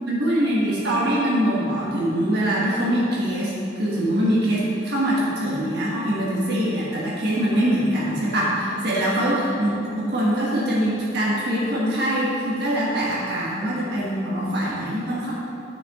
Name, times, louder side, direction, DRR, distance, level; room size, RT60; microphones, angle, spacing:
voice 1, 0.1-15.3, equal, 55° right, -6 dB, 1.5 m, -23 dB
9.3 x 6.9 x 3.7 m, 2.7 s
head